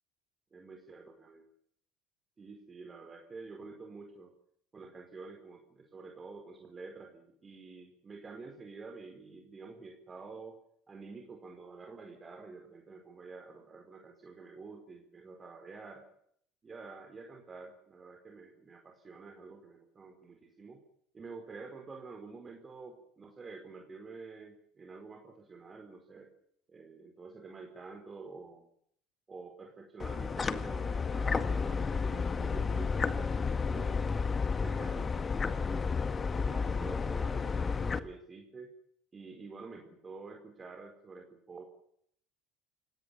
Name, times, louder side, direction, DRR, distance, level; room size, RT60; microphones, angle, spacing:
voice 1, 0.5-1.4 2.4-4.3 4.7-10.6 10.9-16.1 16.6-20.8 21.1-26.3 26.7-28.7 29.3-34.1 34.6-35.1 35.5-35.9 36.3-38.7 39.1-41.6, right 4 dB, 30° right, 3 dB, 4.8 m, -48 dB
sound 1, 30.0-38.0, left 5 dB, 30° left, 1.9 m, -32 dB
29.0 x 17.5 x 7.2 m, 0.67 s
hypercardioid pair, 80°, 0 cm